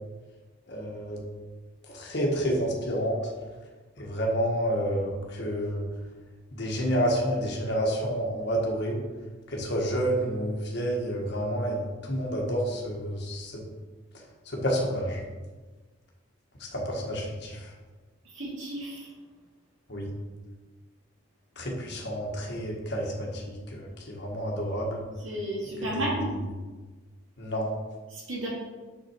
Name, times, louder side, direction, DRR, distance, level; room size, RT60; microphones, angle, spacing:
voice 1, 0.7-1.2 1.9-3.2 4.0-5.8 6.5-9.0 9.5-13.6 14.5-15.2 16.7-17.7 19.9-20.1 21.6-25.0 25.9-26.1 27.4-27.7, equal, 55° left, -1 dB, 1.5 m, -29 dB
voice 2, 18.3-19.1 25.2-26.4 28.1-28.5, right 1 dB, 70° right, -6 dB, 2.2 m, -32 dB
6.0 x 5.9 x 4.5 m, 1.3 s
head